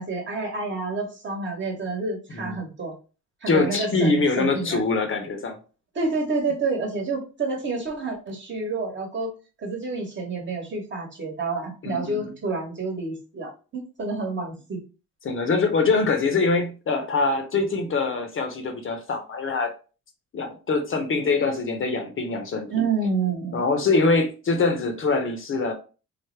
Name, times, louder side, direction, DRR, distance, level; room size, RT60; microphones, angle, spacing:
voice 1, 0.0-2.9 3.4-4.8 5.9-14.8 22.7-23.6, right 3 dB, 40° right, 1.1 m, -29 dB
voice 2, 3.5-5.6 11.8-12.3 15.2-19.7 20.3-22.7 23.5-25.7, left 3 dB, 45° left, 0.7 m, -24 dB
3.3 x 2.0 x 3.2 m
cardioid pair, 90°, 30 cm